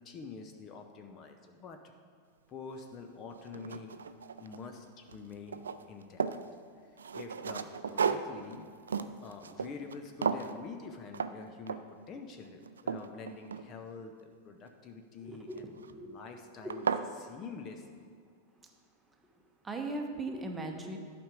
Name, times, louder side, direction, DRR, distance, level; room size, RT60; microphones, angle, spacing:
voice 1, 0.0-1.8 2.5-4.0 4.4-6.3 6.8-15.7 16.0-16.9 17.2-18.1, left 4 dB, 30° left, 5 dB, 0.7 m, -46 dB
sound 1, 2.8-2.9 3.4-4.8 5.1-6.5 7.0-10.0 10.2-10.6 11.1-11.3 11.7-12.0 12.4-14.0 15.5-15.9 16.4-16.5 16.7-17.1, right 6 dB, 70° right, 0.4 m, -35 dB
voice 2, 15.2-16.1 16.6-16.7 19.6-21.0, right 2 dB, 10° right, 3 dB, 1.1 m, -39 dB
12.0 x 5.2 x 4.9 m, 2.2 s
figure-of-eight pair, 90°, 0 cm